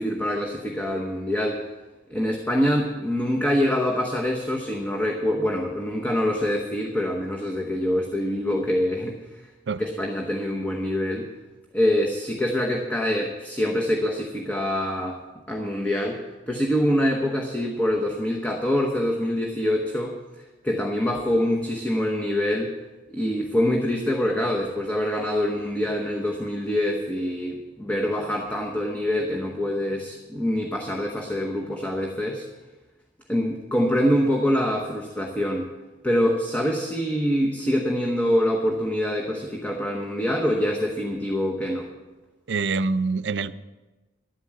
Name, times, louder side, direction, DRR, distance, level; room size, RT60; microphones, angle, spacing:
voice 1, 0.0-1.6 2.1-9.2 9.8-11.3 11.7-15.2 15.5-16.2 16.5-20.2 20.6-22.7 23.1-32.4 33.3-35.7 36.0-41.9, left 1 dB, 10° left, 0 dB, 1.1 m, -25 dB
voice 2, 42.5-43.5, right 4 dB, 75° right, 14 dB, 0.5 m, -25 dB
11.5 x 9.3 x 7.5 m, 1.2 s
head